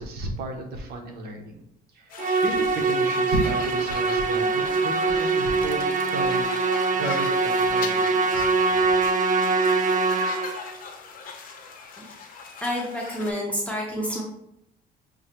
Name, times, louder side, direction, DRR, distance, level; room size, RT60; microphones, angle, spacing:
voice 1, 0.0-1.6 1.9-6.5 6.9-8.4 8.7-8.8, right 2 dB, 70° right, 4 dB, 0.8 m, -33 dB
sound 1, 2.1-13.3, left 5 dB, 55° left, 0.8 m, -39 dB
Musical instrument, 2.2-10.7, right 4 dB, 50° right, 0.5 m, -23 dB
voice 2, 12.6-14.2, equal, 10° left, -3 dB, 0.8 m, -29 dB
6.2 x 2.2 x 2.9 m, 0.76 s
cardioid pair, 110°, 17 cm